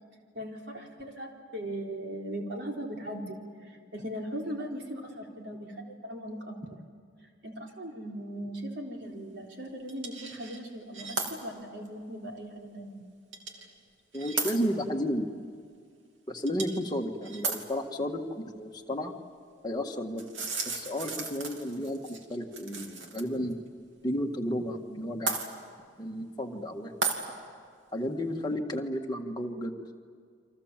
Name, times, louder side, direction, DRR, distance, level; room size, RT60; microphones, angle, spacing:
voice 1, 0.3-6.8 7.4-13.1, right 1 dB, 65° right, 0 dB, 3.9 m, -39 dB
sound 1, 9.9-10.6 10.9-11.3 11.9-12.0 13.3-13.7 14.1-14.5 16.5-16.9 17.2-17.6 20.2-23.2 23.5-23.6 25.3-25.5 27.0-27.2, right 4 dB, 85° right, 2.9 m, -34 dB
voice 2, 14.1-15.5 16.3-19.1 19.6-20.3 20.6-23.6 24.0-25.4 26.0-27.1 27.9-29.8, equal, 20° left, 1 dB, 1.7 m, -33 dB
29.5 x 25.0 x 7.5 m, 2.1 s
head